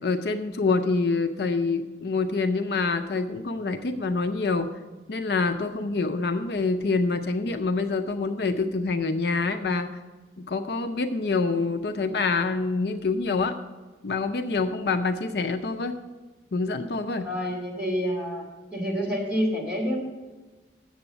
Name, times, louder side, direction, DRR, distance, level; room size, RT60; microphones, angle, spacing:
voice 1, 0.0-4.7 5.1-9.9 10.4-13.6 14.0-16.0 16.5-17.3, left 3 dB, 65° left, 6 dB, 0.5 m, -26 dB
voice 2, 17.2-18.4 18.7-20.0, equal, 5° right, -5 dB, 2.9 m, -28 dB
8.2 x 7.0 x 6.7 m, 1.2 s
head